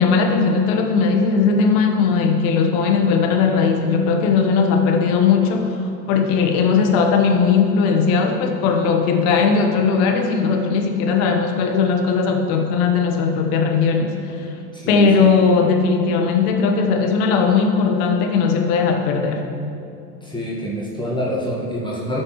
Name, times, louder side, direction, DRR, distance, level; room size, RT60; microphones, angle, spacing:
voice 1, 0.0-14.5 14.9-19.4, left 5 dB, 60° left, 4 dB, 1.2 m, -18 dB
voice 2, 14.7-15.1 20.2-22.2, equal, 10° left, -6 dB, 1.6 m, -26 dB
13.5 x 6.2 x 3.1 m, 2.7 s
hypercardioid pair, 85°, 49 cm